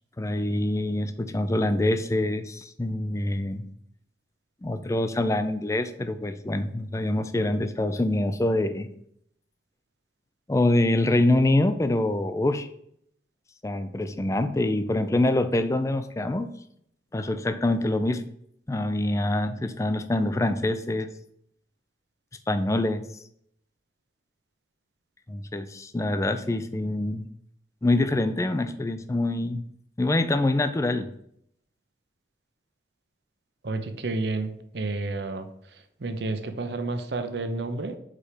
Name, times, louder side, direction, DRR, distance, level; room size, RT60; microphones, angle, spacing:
voice 1, 0.2-3.6 4.6-8.9 10.5-12.7 13.6-16.5 17.1-18.2 18.7-21.1 22.5-23.0 25.3-27.3 27.8-29.6 30.0-31.1, left 1 dB, 15° left, 10 dB, 0.4 m, -25 dB
voice 2, 33.6-35.5 36.0-38.0, right 3 dB, 70° right, 9 dB, 0.7 m, -30 dB
4.9 x 4.3 x 4.9 m, 0.71 s
head